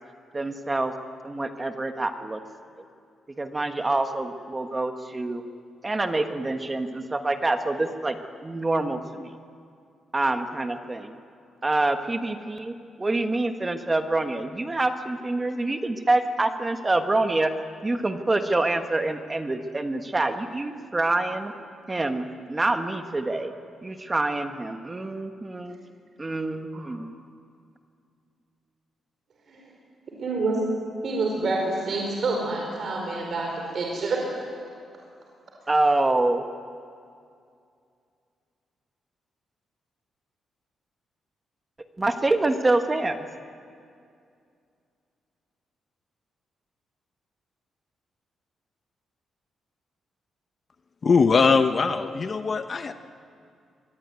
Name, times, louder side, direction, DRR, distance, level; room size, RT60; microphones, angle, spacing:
voice 1, 0.3-0.9 1.2-2.4 3.4-5.4 5.8-8.2 8.4-9.3 10.1-11.1 11.6-17.5 17.8-21.5 21.9-23.5 23.8-25.8 26.2-27.2 35.7-36.5 42.0-43.3, right 2 dB, 15° right, 7 dB, 1.3 m, -26 dB
voice 2, 30.2-30.6 31.0-34.2, right 3 dB, 45° right, -1 dB, 4.9 m, -27 dB
voice 3, 51.0-52.9, left 5 dB, 35° left, 8 dB, 0.9 m, -21 dB
24.5 x 22.0 x 9.6 m, 2.3 s
wide cardioid pair, 160°, 0 cm